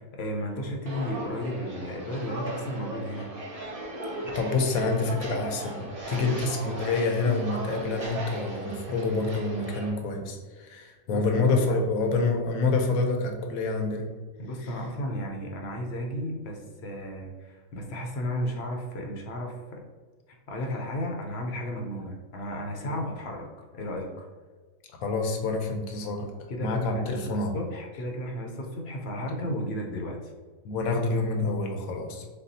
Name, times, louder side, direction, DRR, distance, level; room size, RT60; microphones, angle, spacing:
voice 1, 0.0-3.3 6.1-6.4 11.1-11.8 14.4-19.8 20.3-23.5 23.7-24.3 26.5-30.3, equal, 55° left, 1 dB, 0.8 m, -34 dB
Walk footsteps, 0.8-9.9, right 2 dB, 30° right, 0.8 m, -37 dB
voice 2, 4.2-14.1 14.6-14.7 22.8-23.0 25.0-26.3 26.6-27.5 30.6-32.3, left 3 dB, 80° left, 3 dB, 1.1 m, -27 dB
6.8 x 2.3 x 2.7 m, 1.4 s
omnidirectional pair, 1.4 m